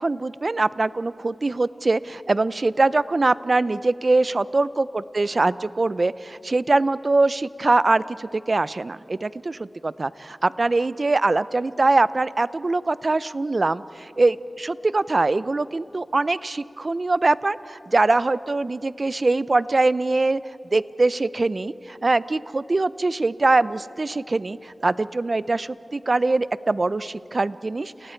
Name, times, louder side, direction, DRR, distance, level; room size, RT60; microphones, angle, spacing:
voice 1, 0.0-20.4 20.7-28.1, right 3 dB, 45° right, 16 dB, 0.5 m, -23 dB
30.0 x 30.0 x 4.5 m, 2.9 s
wide cardioid pair, 80°, 0 cm